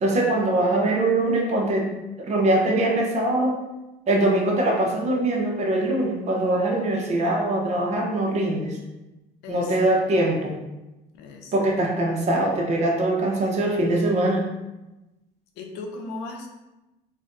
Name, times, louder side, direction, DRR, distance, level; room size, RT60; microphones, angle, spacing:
voice 1, 0.0-1.9 2.2-3.6 4.1-8.8 9.5-10.6 11.5-14.5, right 1 dB, 40° right, -1 dB, 0.7 m, -22 dB
voice 2, 9.4-9.9 11.1-11.5 15.6-16.5, left 3 dB, 85° left, 3 dB, 0.5 m, -36 dB
2.5 x 2.2 x 3.7 m, 1.0 s
cardioid pair, 110°, 17 cm